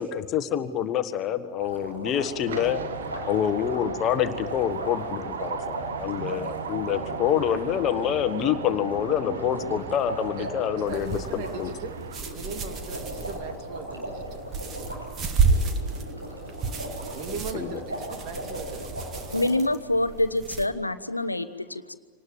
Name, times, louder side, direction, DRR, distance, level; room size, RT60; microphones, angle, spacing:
voice 1, 0.0-2.8 3.3-11.7 17.3-17.8, left 9 dB, 35° left, 11 dB, 1.4 m, -27 dB
sound 1, 1.6-19.4, right 1 dB, 85° right, 7.9 m, -38 dB
sound 2, 2.5-12.2, right 6 dB, 65° right, 1.6 m, -37 dB
voice 2, 6.3-6.6 10.4-10.5 10.8-11.9 12.3-14.2 17.1-19.1, right 5 dB, 45° right, 6 dB, 2.6 m, -39 dB
sound 3, 10.9-20.7, right 4 dB, 30° right, 2.0 m, -31 dB
voice 3, 19.3-21.9, left 1 dB, 85° left, 12 dB, 0.9 m, -26 dB
26.0 x 19.5 x 8.8 m, 1.4 s
figure-of-eight pair, 90°, 0 cm